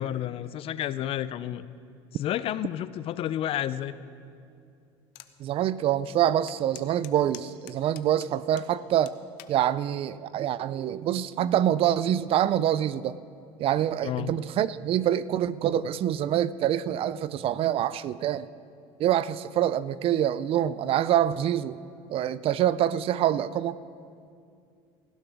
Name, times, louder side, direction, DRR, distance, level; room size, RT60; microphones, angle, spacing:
voice 1, 0.0-1.6 2.1-3.9 14.0-14.4, left 11 dB, 50° left, 16 dB, 0.5 m, -31 dB
sound 1, 5.1-5.3 5.8-5.9 6.5-8.7 9.1-9.6 10.3-10.6, left 16 dB, 75° left, 0.8 m, -46 dB
voice 2, 5.4-9.1 9.5-13.2 13.6-18.5 19.0-21.8 22.1-23.8, right 11 dB, 50° right, 17 dB, 0.4 m, -25 dB
17.5 x 16.0 x 3.5 m, 2.4 s
supercardioid pair, 100°, 12 cm